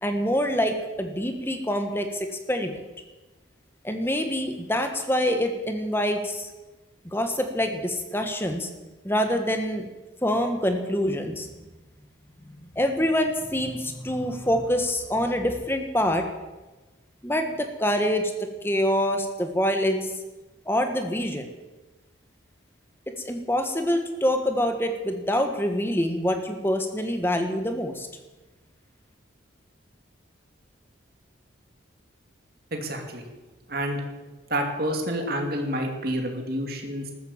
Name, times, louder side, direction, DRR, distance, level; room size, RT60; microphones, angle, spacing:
voice 1, 0.0-2.8 3.8-6.5 7.0-8.7 9.0-9.9 10.2-11.5 12.6-16.2 17.2-20.1 20.7-21.5 23.2-28.1, equal, 10° left, 6 dB, 1.4 m, -26 dB
voice 2, 32.7-33.2 33.7-34.0 34.5-37.1, right 1 dB, 50° right, 3 dB, 2.7 m, -28 dB
14.0 x 14.0 x 7.3 m, 1.1 s
head